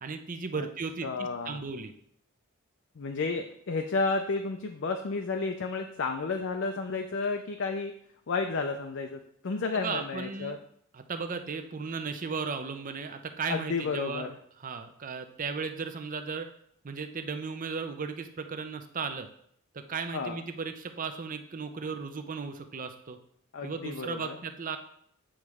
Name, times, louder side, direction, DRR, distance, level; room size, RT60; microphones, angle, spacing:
voice 1, 0.0-1.9 9.7-10.6 10.9-14.3 14.6-16.5 16.8-19.3 19.7-23.2 23.6-24.8, right 5 dB, 40° right, 8 dB, 0.5 m, -36 dB
voice 2, 1.0-1.6 3.0-7.9 8.3-10.6 13.5-14.3 20.1-20.4 23.5-24.4, left 4 dB, 55° left, 5 dB, 0.5 m, -32 dB
8.7 x 3.1 x 4.8 m, 0.67 s
head